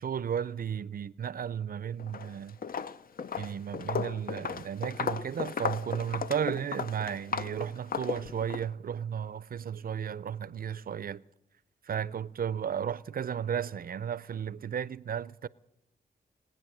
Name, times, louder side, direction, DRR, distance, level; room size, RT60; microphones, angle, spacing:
voice 1, 0.0-2.6 3.4-11.2 11.9-15.5, right 8 dB, 55° right, 0.5 m, -34 dB
Walk footsteps, 2.0-2.3 2.6-8.7, left 6 dB, 55° left, 0.6 m, -35 dB
20.0 x 9.3 x 7.7 m
cardioid pair, 70°, 18 cm